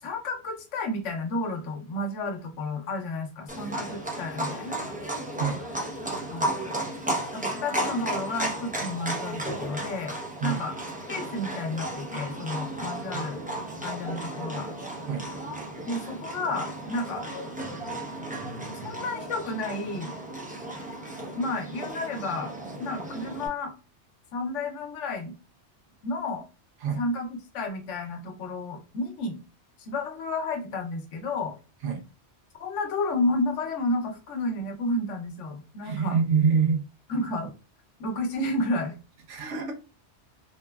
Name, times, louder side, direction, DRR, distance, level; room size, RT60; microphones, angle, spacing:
voice 1, 0.0-4.9 6.3-6.5 7.3-10.1 10.4-10.7 11.1-13.4 13.8-14.7 15.8-17.2 18.8-20.1 21.3-22.5 22.8-23.7 24.3-25.3 26.0-26.4 27.0-29.4 29.8-31.6 32.6-36.2 37.1-37.5 38.0-39.0, left 2 dB, 85° left, 3 dB, 1.0 m, -31 dB
Livestock farm animals working animals, 3.5-23.5, right 1 dB, 10° right, 0.4 m, -34 dB
voice 2, 35.8-36.8 39.3-39.7, right 6 dB, 85° right, 1 dB, 1.1 m, -25 dB
3.1 x 2.2 x 2.2 m, 0.31 s
omnidirectional pair, 1.2 m